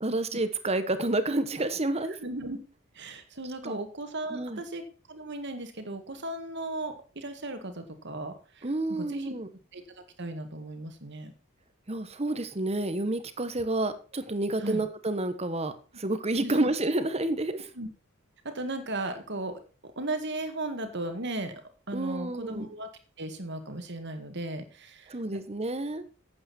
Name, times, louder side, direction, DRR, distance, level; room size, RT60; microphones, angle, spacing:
voice 1, 0.0-2.2 3.6-3.8 4.3-4.6 8.6-9.5 11.9-17.7 21.9-22.7 25.1-26.0, right 2 dB, 30° right, 11 dB, 1.1 m, -29 dB
voice 2, 2.2-2.6 2.9-9.3 9.7-9.8 10.2-11.3 14.6-14.9 16.4-16.7 17.7-17.9 18.4-19.6 20.0-21.5 21.9-22.9 23.2-25.4, right 2 dB, 55° right, 8 dB, 2.0 m, -36 dB
11.5 x 8.6 x 4.3 m, 0.35 s
head